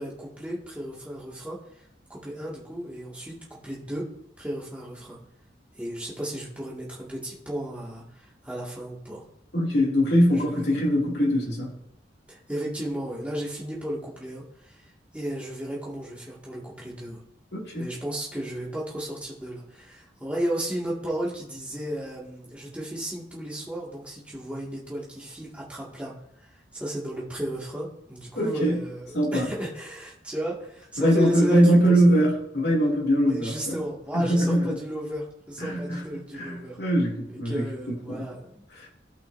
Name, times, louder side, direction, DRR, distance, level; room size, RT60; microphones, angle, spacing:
voice 1, 0.0-1.6 2.1-4.0 4.4-5.2 5.7-9.3 10.3-10.8 12.3-14.9 15.1-17.2 17.8-26.1 26.4-32.3 33.2-36.8 37.3-38.6, right 1 dB, 5° right, -5 dB, 2.0 m, -34 dB
voice 2, 9.5-11.8 17.5-17.9 28.4-28.8 29.1-29.5 31.0-33.8 34.1-34.8 35.6-36.0 36.4-38.3 38.8-38.9, equal, 60° left, -3 dB, 2.5 m, -22 dB
16.0 x 5.6 x 2.7 m, 0.78 s
head